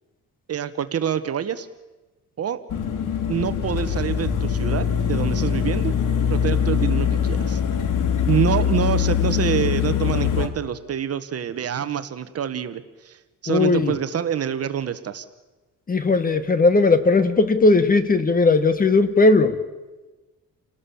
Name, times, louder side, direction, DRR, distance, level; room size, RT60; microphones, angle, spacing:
voice 1, 0.5-1.7 2.4-2.6 3.3-5.9 6.3-7.6 8.3-15.2, right 9 dB, 45° right, 11 dB, 1.3 m, -26 dB
sound 1, 2.7-10.5, left 8 dB, 65° left, 2.5 m, -22 dB
voice 2, 13.5-13.9 15.9-19.6, left 3 dB, 25° left, 12 dB, 1.5 m, -17 dB
28.5 x 18.5 x 7.1 m, 1.2 s
cardioid pair, 135°, 33 cm